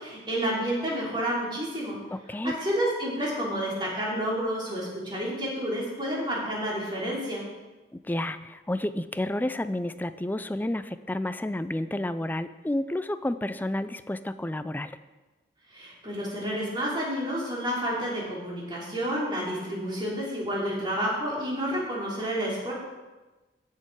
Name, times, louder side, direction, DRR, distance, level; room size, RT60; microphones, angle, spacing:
voice 1, 0.0-2.0 2.4-7.4 15.7-22.7, equal, 25° right, -5 dB, 3.4 m, -30 dB
voice 2, 2.1-2.6 7.9-15.0, left 1 dB, 10° left, 12 dB, 0.3 m, -30 dB
16.0 x 6.6 x 4.8 m, 1.2 s
head